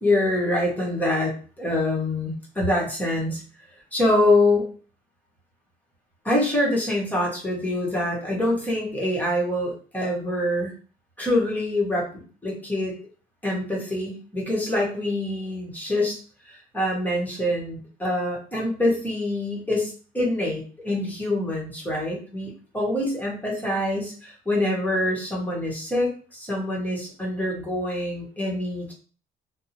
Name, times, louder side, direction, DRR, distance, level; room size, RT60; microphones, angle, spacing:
voice 1, 0.0-3.4 3.9-4.7 6.2-10.7 11.2-13.0 13.4-16.2 16.5-28.9, left 1 dB, 10° left, -3 dB, 1.0 m, -25 dB
2.5 x 2.0 x 2.8 m, 0.39 s
cardioid pair, 115°, 16 cm